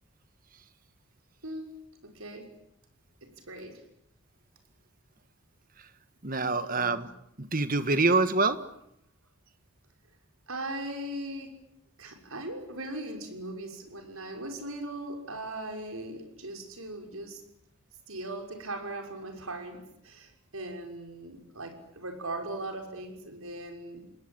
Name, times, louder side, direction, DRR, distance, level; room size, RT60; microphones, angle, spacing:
voice 1, 1.4-2.5 3.2-3.8 6.3-7.1 10.5-11.5 12.0-17.4 18.1-24.0, right 1 dB, 70° right, 3 dB, 6.0 m, -39 dB
voice 2, 6.2-7.1 7.4-8.6, right 3 dB, 40° right, 11 dB, 1.5 m, -25 dB
28.0 x 20.5 x 8.9 m, 0.76 s
head